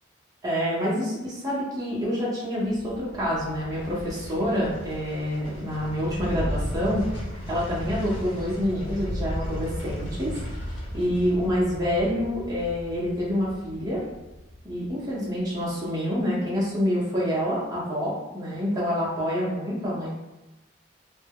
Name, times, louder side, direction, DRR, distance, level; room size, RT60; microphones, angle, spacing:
voice 1, 0.4-7.0 7.5-10.3 10.9-14.0 14.6-20.1, equal, 20° right, -7 dB, 0.7 m, -27 dB
sound 1, 2.6-15.8 16.1-16.2, equal, 75° left, 1.0 m, -35 dB
2.2 x 2.0 x 3.4 m, 1.0 s
head